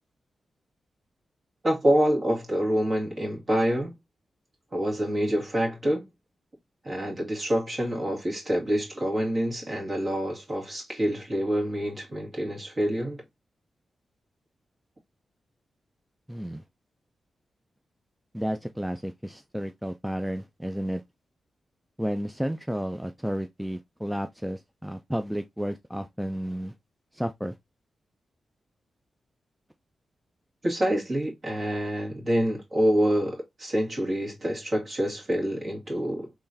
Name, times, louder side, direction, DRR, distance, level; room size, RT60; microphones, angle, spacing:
voice 1, 1.6-4.0 4.7-6.1 6.8-13.2 30.6-36.3, equal, 45° right, 2.1 m, -26 dB
voice 2, 16.3-16.6 18.3-21.0 22.0-26.7 27.1-27.6, equal, 5° right, 0.4 m, -32 dB
3.6 x 3.1 x 2.7 m
cardioid pair, 60°, 0 cm